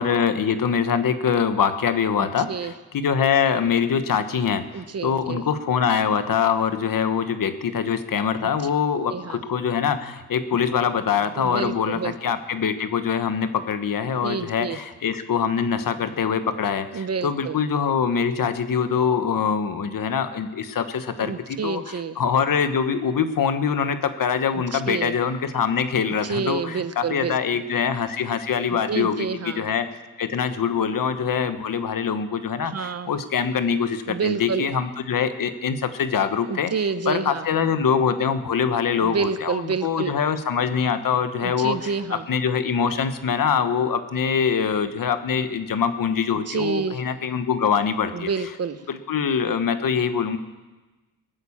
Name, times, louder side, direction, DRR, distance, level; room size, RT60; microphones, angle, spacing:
voice 1, 0.0-29.8 30.2-36.7 37.1-41.9 42.3-48.3 48.9-50.4, left 7 dB, 65° left, 10 dB, 1.3 m, -24 dB
voice 2, 2.2-2.7 4.7-5.4 9.1-9.4 11.4-12.4 14.2-14.8 16.9-17.6 21.1-22.2 24.7-25.1 26.2-27.6 28.7-29.7 32.6-33.1 34.1-34.7 36.5-37.5 38.9-40.1 41.4-42.3 46.5-47.0 48.1-48.8, right 5 dB, 45° right, 12 dB, 0.9 m, -29 dB
21.0 x 9.1 x 7.3 m, 1.2 s
wide cardioid pair, 105°, 35 cm